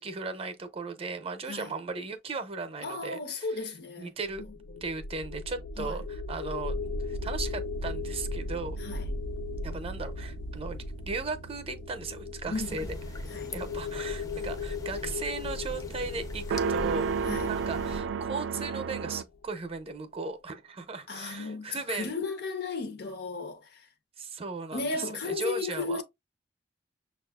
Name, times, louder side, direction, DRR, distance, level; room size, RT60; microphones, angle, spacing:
voice 1, 0.0-3.5 4.0-4.4 4.8-8.8 9.6-13.3 13.5-22.1 24.2-26.0, right 4 dB, 35° right, 0.6 m, -37 dB
voice 2, 2.8-4.1 4.7-4.8 5.8-6.0 8.8-9.1 12.5-13.0 13.3-13.5 17.2-17.5 21.1-23.9 24.7-26.0, left 3 dB, 65° left, 0.7 m, -35 dB
sound 1, 4.2-19.4, left 3 dB, 85° left, 0.3 m, -37 dB
sound 2, 6.7-19.2, right 5 dB, 85° right, 0.3 m, -37 dB
sound 3, 12.5-18.0, left 1 dB, 20° left, 0.5 m, -42 dB
6.2 x 2.4 x 2.2 m
head